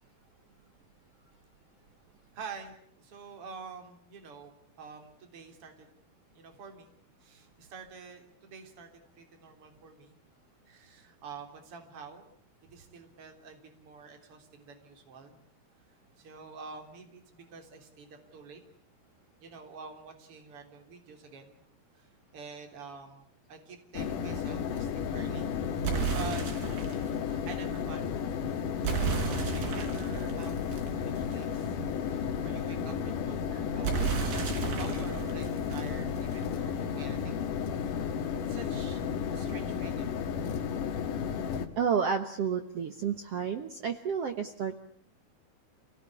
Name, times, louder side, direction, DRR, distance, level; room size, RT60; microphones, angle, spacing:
voice 1, 2.3-5.9 6.3-6.9 7.2-10.2 10.7-12.3 12.7-15.4 16.2-18.6 19.4-21.6 21.9-25.5 25.7-26.9 27.2-28.4 28.8-30.7 31.1-37.5 37.7-37.9 38.5-39.0 39.3-40.2, right 5 dB, 35° right, 5 dB, 4.1 m, -47 dB
sound 1, 23.9-41.7, left 7 dB, 60° left, 2.9 m, -33 dB
sound 2, 25.8-27.1 28.8-31.6 33.8-36.6, right 7 dB, 85° right, 6.0 m, -33 dB
voice 2, 41.8-44.8, right 6 dB, 70° right, 8 dB, 1.5 m, -30 dB
28.5 x 18.5 x 9.9 m, 0.63 s
omnidirectional pair, 4.6 m